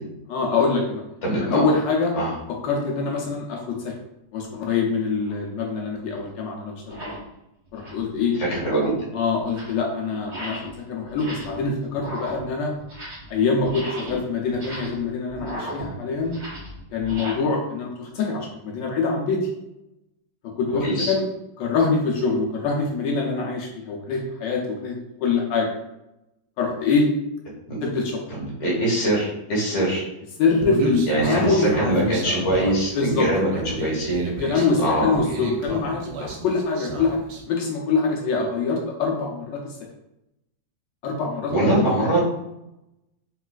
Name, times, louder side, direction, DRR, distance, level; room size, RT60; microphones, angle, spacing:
voice 1, 0.3-1.0 1.4-2.1 2.6-3.9 4.3-7.1 7.7-8.3 9.1-10.6 10.9-12.7 13.3-16.3 16.9-19.4 20.6-21.2 21.6-25.7 26.6-27.0 27.8-28.2 30.4-32.0 32.9-33.3 34.3-37.2 37.5-39.7 41.0-41.9, left 4 dB, 75° left, -1 dB, 1.2 m, -24 dB
voice 2, 1.2-1.6 2.1-2.3 8.4-9.0 20.8-21.1 27.7-27.8 28.3-30.0 31.1-33.5 33.8-34.3 34.5-35.2 41.5-42.3, right 1 dB, 35° left, -5 dB, 0.5 m, -23 dB
sound 1, 5.2-5.4 6.2-6.3 6.8-7.3 7.7-8.1 8.5-9.1 9.4-9.8 10.2-10.8 11.1-11.6 11.9-13.4 13.6-17.3, equal, 45° right, 0.7 m, -36 dB
Human voice, 30.6-37.4, right 2 dB, 70° right, 1.0 m, -32 dB
3.9 x 2.4 x 2.2 m, 0.87 s
omnidirectional pair, 2.1 m